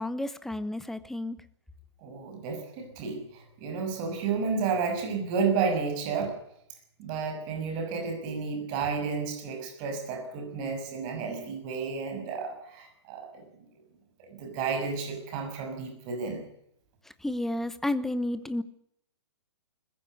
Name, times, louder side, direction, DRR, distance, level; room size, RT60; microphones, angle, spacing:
voice 1, 0.0-1.4 17.0-18.6, left 1 dB, ahead, 15 dB, 1.0 m, -31 dB
voice 2, 2.0-6.3 7.0-13.4 14.2-16.5, right 5 dB, 30° right, 4 dB, 6.4 m, -31 dB
20.5 x 15.0 x 9.8 m, 0.73 s
figure-of-eight pair, 120°, 15 cm